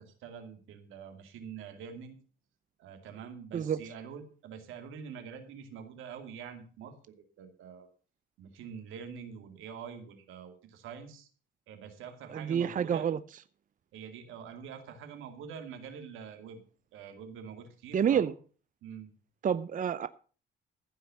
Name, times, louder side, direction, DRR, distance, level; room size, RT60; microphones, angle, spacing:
voice 1, 0.0-2.2 2.8-7.9 8.4-11.3 11.7-13.1 13.9-16.6 16.9-18.3 18.8-19.1, right 7 dB, 90° right, 2.5 m, -45 dB
voice 2, 12.3-13.2 17.9-18.3 19.4-20.1, right 8 dB, 40° right, 0.6 m, -28 dB
15.0 x 5.8 x 6.9 m
cardioid pair, 90°, 20 cm